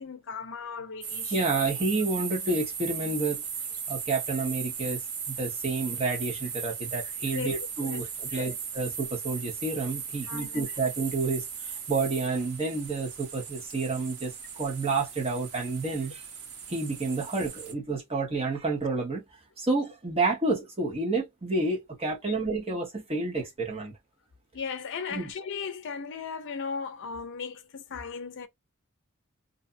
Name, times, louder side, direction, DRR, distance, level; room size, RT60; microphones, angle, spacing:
voice 1, 0.0-1.7 7.3-7.5 7.8-8.1 8.3-8.6 10.3-10.6 22.2-22.4 24.5-28.5, left 5 dB, 60° left, 0.5 m, -37 dB
sound 1, 1.0-17.7, right 6 dB, 85° right, 0.7 m, -37 dB
voice 2, 1.3-3.4 3.9-5.0 5.3-11.5 11.9-16.2 16.7-19.2 19.6-23.9 25.1-25.3, right 3 dB, 30° right, 1.0 m, -29 dB
2.6 x 2.4 x 2.5 m
head